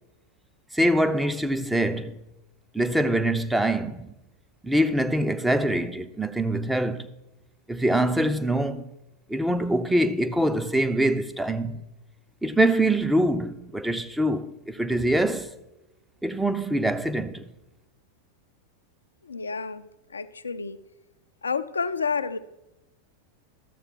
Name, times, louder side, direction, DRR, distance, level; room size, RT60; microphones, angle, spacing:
voice 1, 0.7-2.2 2.7-4.1 4.6-7.1 7.7-8.9 9.3-11.9 12.4-15.5 16.2-17.5, right 1 dB, 5° right, 0.5 m, -24 dB
voice 2, 19.2-19.9 20.1-20.8 21.4-22.4, left 5 dB, 75° left, 0.4 m, -29 dB
12.5 x 7.1 x 4.4 m
figure-of-eight pair, 90°, 0 cm